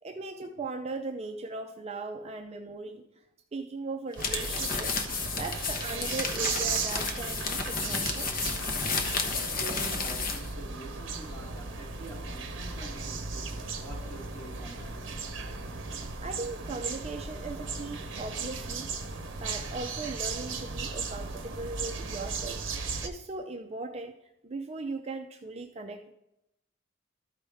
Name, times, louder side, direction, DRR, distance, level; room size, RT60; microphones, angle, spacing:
voice 1, 0.0-3.2 3.5-8.5 15.9-18.9 19.4-22.7 23.0-24.1 24.4-26.1, right 3 dB, 30° right, 0.4 m, -38 dB
sound 1, 4.1-10.5, left 4 dB, 45° left, 1.0 m, -32 dB
sound 2, 4.2-23.1, right 4 dB, 65° right, 0.9 m, -36 dB
voice 2, 9.5-15.1, right 1 dB, 10° left, 2.5 m, -46 dB
13.0 x 4.9 x 3.4 m
head